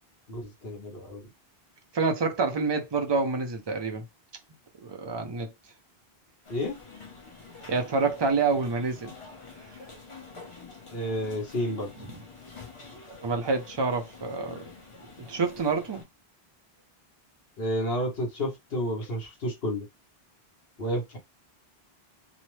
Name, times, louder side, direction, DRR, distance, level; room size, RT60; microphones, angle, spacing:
voice 1, 0.3-1.2 6.5-6.8 10.9-11.9 17.6-19.9 20.8-21.2, equal, 70° left, 1.3 m, -31 dB
voice 2, 1.9-4.0 4.8-5.5 7.7-9.1 12.0-12.2 13.2-14.6 15.2-16.0, right 4 dB, 35° right, 0.4 m, -27 dB
sound 1, 6.4-16.0, left 4 dB, 35° left, 0.8 m, -47 dB
3.0 x 2.0 x 3.1 m
omnidirectional pair, 1.0 m